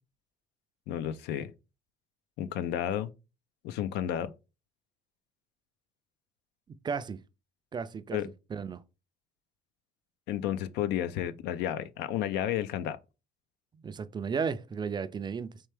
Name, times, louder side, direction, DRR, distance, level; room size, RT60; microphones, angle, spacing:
voice 1, 0.9-1.5 2.4-3.1 3.6-4.3 8.1-8.3 10.3-13.0, left 11 dB, 85° left, 0.5 m, -32 dB
voice 2, 6.8-7.2 7.7-8.2 8.5-8.8 13.8-15.6, right 6 dB, 25° right, 0.3 m, -34 dB
4.4 x 3.3 x 3.3 m
cardioid pair, 110°, 17 cm